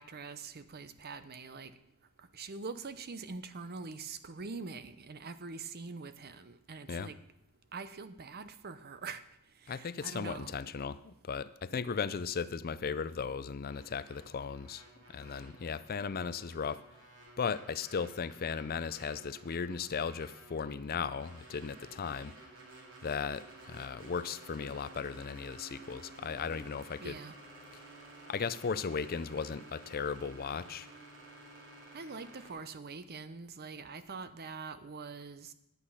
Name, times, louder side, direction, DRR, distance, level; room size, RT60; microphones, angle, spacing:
voice 1, 0.0-1.7 2.3-7.2 7.7-9.2 9.6-10.5 27.0-27.4 31.9-35.5, right 4 dB, 45° right, 12 dB, 0.7 m, -44 dB
voice 2, 9.7-14.8 15.1-16.8 17.4-22.3 23.0-27.2 27.7-27.8 28.3-30.9, left 6 dB, 45° left, 14 dB, 0.5 m, -36 dB
sound 1, 13.6-32.5, right 2 dB, 60° right, 2.8 m, -53 dB
11.0 x 8.2 x 5.6 m, 0.82 s
head